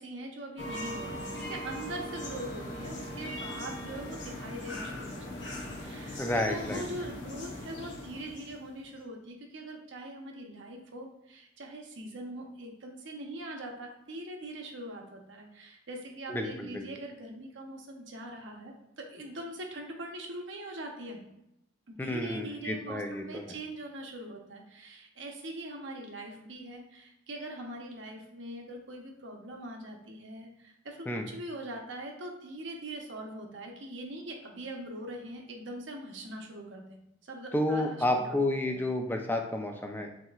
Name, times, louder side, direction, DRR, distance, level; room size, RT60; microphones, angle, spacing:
voice 1, 0.0-21.2 21.9-37.0 37.2-38.8, right 1 dB, 80° right, 1 dB, 0.9 m, -42 dB
sound 1, 0.6-8.9, left 1 dB, 70° left, 1.0 m, -40 dB
voice 2, 6.2-6.8 16.3-16.9 22.0-23.5 31.1-31.3 37.5-40.1, left 1 dB, 10° left, 3 dB, 0.4 m, -31 dB
7.4 x 2.9 x 2.4 m, 0.81 s
head